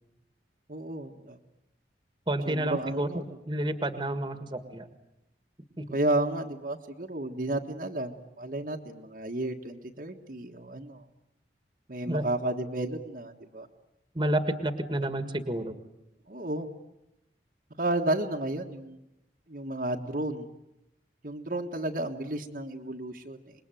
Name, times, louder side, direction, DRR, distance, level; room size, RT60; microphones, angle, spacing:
voice 1, 0.7-1.4 2.4-3.2 5.9-11.0 11.9-13.7 16.3-16.7 17.8-19.0 19.5-20.5 21.2-23.5, right 1 dB, 50° right, 2 dB, 1.5 m, -32 dB
voice 2, 2.3-4.9 5.8-5.9 12.0-12.3 14.1-15.8, right 1 dB, 25° right, 9 dB, 1.8 m, -30 dB
26.5 x 21.5 x 9.2 m, 0.87 s
head